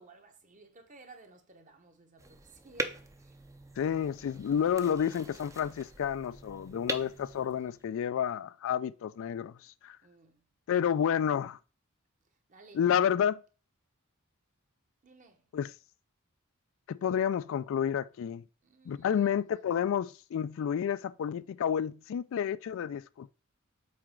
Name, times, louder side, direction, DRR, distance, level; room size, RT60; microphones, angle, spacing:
voice 1, 0.0-3.4 10.0-10.5 12.2-12.8 15.0-15.5 18.6-19.4, right 3 dB, 35° right, 1.1 m, -57 dB
sound 1, 2.2-8.1, right 2 dB, 15° right, 0.5 m, -42 dB
voice 2, 3.8-10.0 10.7-11.6 12.8-13.4 15.5-15.7 16.9-18.4 18.9-23.3, left 8 dB, 65° left, 0.3 m, -30 dB
7.7 x 4.3 x 3.7 m
head